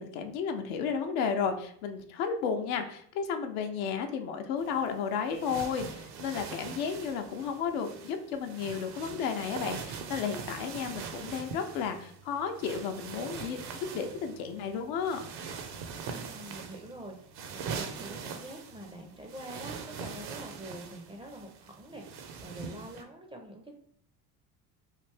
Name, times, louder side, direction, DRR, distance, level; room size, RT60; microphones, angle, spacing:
voice 1, 0.0-15.2, left 6 dB, 65° left, 6 dB, 0.6 m, -33 dB
sound 1, 4.6-23.0, right 6 dB, 55° right, 0.7 m, -42 dB
voice 2, 16.0-23.8, right 1 dB, 10° right, 2 dB, 0.5 m, -46 dB
3.3 x 2.5 x 3.2 m, 0.62 s
hypercardioid pair, 70°, 48 cm